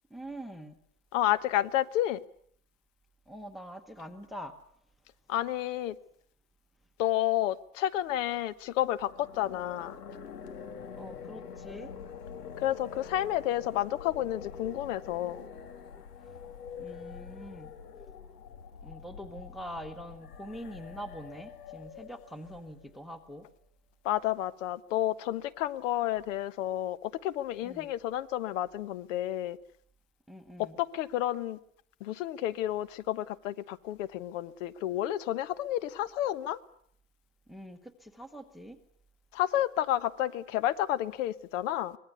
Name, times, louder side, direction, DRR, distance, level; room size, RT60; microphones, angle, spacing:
voice 1, 0.1-0.8 3.3-4.5 11.0-11.9 16.2-16.4 16.8-17.7 18.8-23.5 27.6-27.9 30.3-30.8 37.5-38.8, equal, ahead, 1.1 m, -44 dB
voice 2, 1.1-2.2 5.3-6.0 7.0-9.9 12.6-15.5 24.0-29.6 30.6-31.6 32.0-36.6 39.3-42.0, left 13 dB, 55° left, 1.3 m, -30 dB
sound 1, 8.9-23.0, left 7 dB, 90° left, 2.9 m, -46 dB
25.0 x 20.0 x 8.2 m
hypercardioid pair, 140°, 46 cm